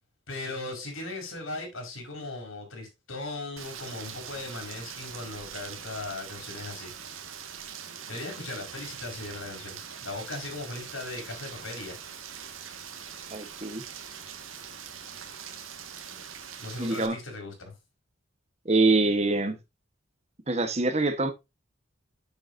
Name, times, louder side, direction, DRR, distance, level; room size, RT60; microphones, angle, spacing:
voice 1, 0.3-6.9 8.1-12.0 16.6-17.7, left 2 dB, 90° left, 4.9 m, -38 dB
Rain, 3.6-17.1, right 7 dB, 85° right, 1.6 m, -42 dB
voice 2, 13.3-13.8 16.8-17.2 18.6-19.6 20.5-21.3, right 2 dB, 30° right, 1.2 m, -24 dB
10.5 x 7.1 x 2.6 m
head